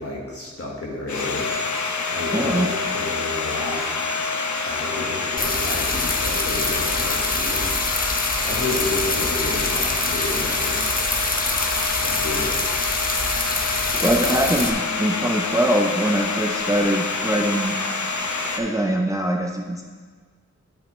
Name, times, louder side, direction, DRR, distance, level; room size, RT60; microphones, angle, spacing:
voice 1, 0.0-1.5 2.1-3.9 4.6-7.7 8.4-10.9 12.0-12.6, left 2 dB, 50° left, -3 dB, 1.5 m, -31 dB
Domestic sounds home sounds, 1.1-18.6, left 4 dB, 70° left, 0.8 m, -26 dB
voice 2, 2.3-2.7 13.9-17.8 18.6-19.8, right 1 dB, 10° right, 1 dB, 0.6 m, -22 dB
sound 1, 5.4-14.7, left 2 dB, 30° left, 0.9 m, -26 dB
12.0 x 5.7 x 3.1 m, 1.5 s
wide cardioid pair, 60°, 30 cm